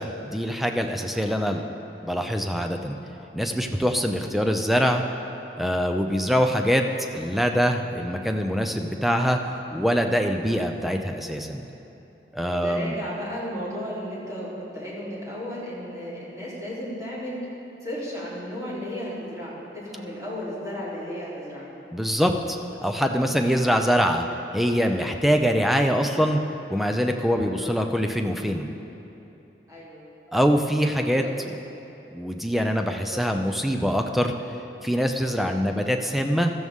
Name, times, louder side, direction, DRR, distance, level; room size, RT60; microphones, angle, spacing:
voice 1, 0.0-1.7 2.0-3.0 3.3-5.0 5.6-6.9 7.1-9.4 9.7-11.6 12.3-13.0 21.9-24.2 24.5-26.4 26.7-28.7 30.3-31.2 32.1-34.3 34.8-36.5, equal, ahead, 4 dB, 0.6 m, -24 dB
voice 2, 12.5-17.5 17.8-21.6 27.5-27.7 29.7-30.1 30.4-30.8 31.2-31.3 35.3-35.7, equal, 20° right, -8 dB, 3.4 m, -35 dB
15.5 x 13.5 x 3.7 m, 3.0 s
head